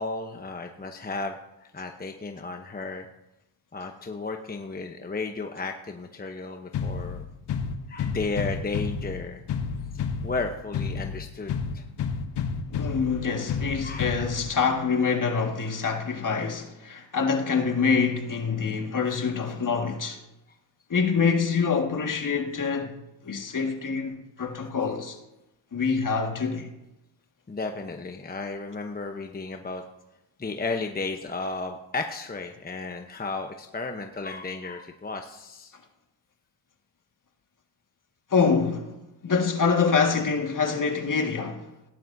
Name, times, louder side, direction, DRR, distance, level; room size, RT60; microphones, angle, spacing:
voice 1, 0.0-3.1 3.7-7.2 7.9-9.4 10.2-11.8 13.8-14.1 24.4-24.5 27.5-29.8 30.4-35.7, left 3 dB, 20° left, 1.0 m, -34 dB
sound 1, 6.7-14.7, left 6 dB, 60° left, 1.1 m, -31 dB
voice 2, 12.7-20.2 20.9-22.9 23.2-25.2 25.7-26.7 38.3-41.7, left 5 dB, 45° left, 2.0 m, -25 dB
17.5 x 10.5 x 2.8 m
cardioid pair, 65°, 45 cm